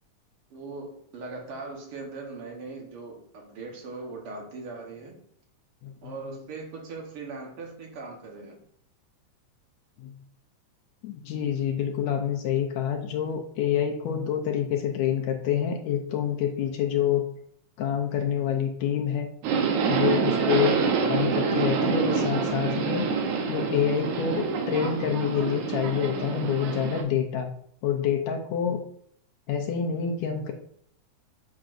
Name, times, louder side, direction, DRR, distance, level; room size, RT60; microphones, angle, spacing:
voice 1, 0.5-5.2 6.0-8.6, right 3 dB, 55° right, 1 dB, 1.8 m, -40 dB
voice 2, 11.0-17.2 17.8-19.3 19.9-20.8 21.1-23.1 23.5-27.5 27.8-28.8 29.5-30.5, left 9 dB, 75° left, 3 dB, 1.8 m, -27 dB
Subway metro underground, 19.4-27.0, right 5 dB, 80° right, 2.3 m, -26 dB
7.5 x 5.9 x 2.5 m, 0.67 s
omnidirectional pair, 3.4 m